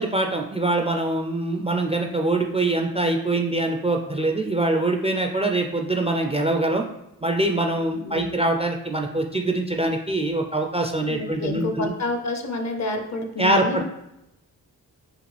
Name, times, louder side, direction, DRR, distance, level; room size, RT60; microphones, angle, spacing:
voice 1, 0.0-6.8 7.2-11.9 13.4-13.8, right 2 dB, 15° right, 4 dB, 0.4 m, -24 dB
voice 2, 7.9-8.4 11.1-13.8, left 2 dB, 45° left, 5 dB, 0.7 m, -29 dB
5.0 x 2.4 x 3.3 m, 0.88 s
cardioid pair, 55°, 39 cm